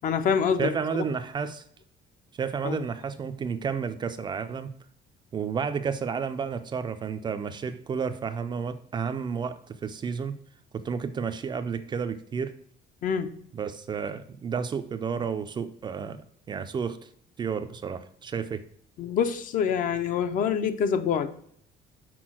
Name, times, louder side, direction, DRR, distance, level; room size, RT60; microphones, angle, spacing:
voice 1, 0.0-0.7 2.6-2.8 13.0-13.3 19.0-21.3, left 7 dB, 50° left, 0.6 m, -25 dB
voice 2, 0.6-1.6 2.4-4.7 5.3-10.3 10.7-12.5 13.5-17.1 17.4-18.6, right 6 dB, 25° right, 0.4 m, -31 dB
6.1 x 4.0 x 6.1 m
cardioid pair, 160°, 17 cm